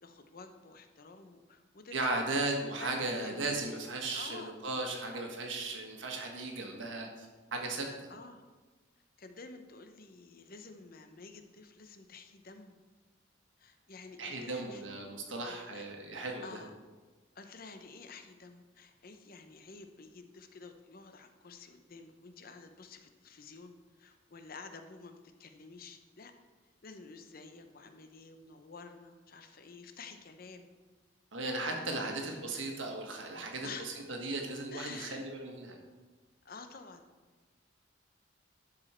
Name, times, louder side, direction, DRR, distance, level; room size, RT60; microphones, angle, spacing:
voice 1, 0.0-2.2 2.8-3.5 4.1-4.8 5.1-5.3 8.1-8.4 9.2-12.8 13.6-14.8 15.4-15.8 16.4-16.7 17.3-26.3 26.8-30.7 31.7-32.4 33.6-34.0 34.7-35.2 36.4-37.0, left 4 dB, 50° left, 7 dB, 0.7 m, -50 dB
voice 2, 1.9-7.3 7.5-8.1 14.2-16.6 31.3-35.8, right 2 dB, 85° right, 2 dB, 1.6 m, -36 dB
11.5 x 5.1 x 4.4 m, 1.3 s
head